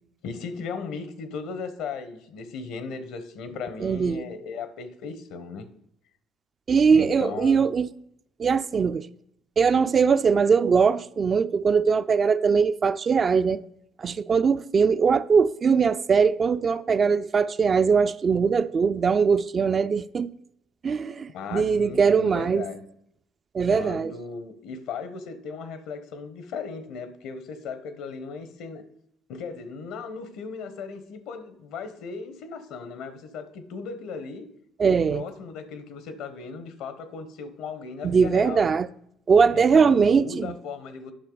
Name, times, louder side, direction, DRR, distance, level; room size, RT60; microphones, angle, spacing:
voice 1, 0.2-5.7 6.9-7.6 21.3-22.8 23.6-28.8 29.3-34.5 34.8-38.8 39.5-41.1, left 5 dB, 75° left, 1.1 m, -37 dB
voice 2, 3.8-4.2 6.7-7.9 8.4-9.1 9.6-13.6 14.0-20.3 20.8-22.7 23.5-24.1 34.8-35.2 38.0-38.9 39.3-40.5, right 5 dB, 40° right, 0.4 m, -21 dB
10.0 x 5.7 x 3.9 m
supercardioid pair, 80°, 0 cm